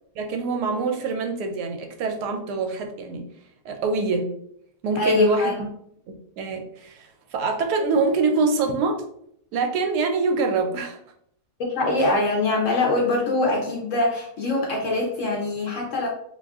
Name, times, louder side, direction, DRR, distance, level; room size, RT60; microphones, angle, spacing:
voice 1, 0.2-3.2 3.6-4.3 4.8-5.7 6.1-9.0 9.5-11.0, right 4 dB, 75° right, 4 dB, 1.1 m, -25 dB
voice 2, 4.9-5.6 11.7-16.1, left 2 dB, 60° left, -1 dB, 0.9 m, -23 dB
2.8 x 2.4 x 3.4 m, 0.69 s
omnidirectional pair, 1.8 m